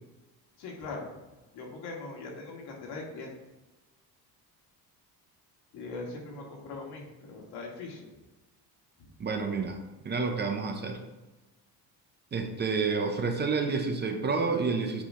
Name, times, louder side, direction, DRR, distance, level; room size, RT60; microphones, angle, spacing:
voice 1, 0.6-1.1 1.5-3.3 5.7-8.1, left 3 dB, 75° left, -1 dB, 2.2 m, -40 dB
voice 2, 9.2-11.0 12.3-15.0, right 4 dB, 25° right, 4 dB, 0.8 m, -29 dB
8.7 x 4.9 x 3.8 m, 1.1 s
cardioid pair, 150°, 39 cm